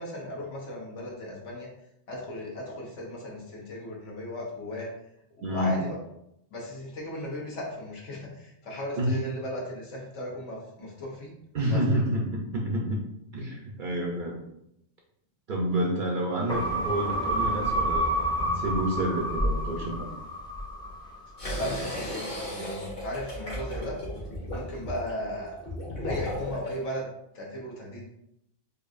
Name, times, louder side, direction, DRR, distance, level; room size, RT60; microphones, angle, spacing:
voice 1, 0.0-1.7 2.1-4.9 5.4-6.0 6.5-11.3 11.7-11.8 21.5-24.0 24.5-25.5 26.0-27.1 27.3-28.1, left 1 dB, 70° left, -3 dB, 1.3 m, -36 dB
voice 2, 5.4-5.8 9.0-9.2 11.5-13.0 13.3-14.4 15.5-18.1 18.4-20.1, right 1 dB, 55° right, -1 dB, 0.7 m, -28 dB
sound 1, 16.5-21.2 21.5-21.6, right 1 dB, 5° left, 0.4 m, -29 dB
sound 2, 21.4-26.7, equal, 50° left, 1.3 m, -35 dB
4.6 x 2.6 x 2.5 m, 0.78 s
omnidirectional pair, 1.3 m